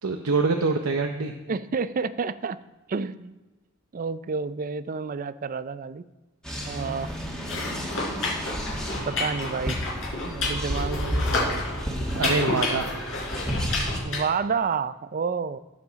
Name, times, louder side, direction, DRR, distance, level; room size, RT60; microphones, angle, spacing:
voice 1, 0.0-1.3 12.1-12.9, right 4 dB, 85° right, 4 dB, 0.8 m, -25 dB
voice 2, 1.5-2.6 2.9-3.3 3.9-6.0 6.7-7.2 9.1-9.8 10.2-11.6 14.0-15.6, right 5 dB, 40° right, 15 dB, 0.4 m, -29 dB
sound 1, 6.4-14.0, equal, 5° left, 1.8 m, -31 dB
sound 2, 7.4-14.2, left 3 dB, 65° left, 4.2 m, -30 dB
17.5 x 7.1 x 4.0 m, 1.2 s
head